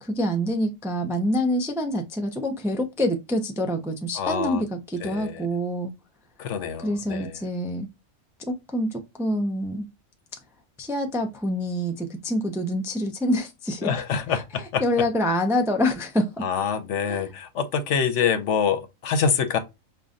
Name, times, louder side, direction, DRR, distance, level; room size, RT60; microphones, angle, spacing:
voice 1, 0.0-5.9 6.8-7.9 8.5-9.9 10.8-13.9 14.8-16.3 17.1-17.3, equal, 5° right, 0.3 m, -26 dB
voice 2, 4.1-4.6 5.0-5.5 6.4-7.4 13.8-14.8 16.4-19.6, left 6 dB, 65° left, 0.9 m, -26 dB
5.5 x 2.6 x 2.4 m
omnidirectional pair, 1.4 m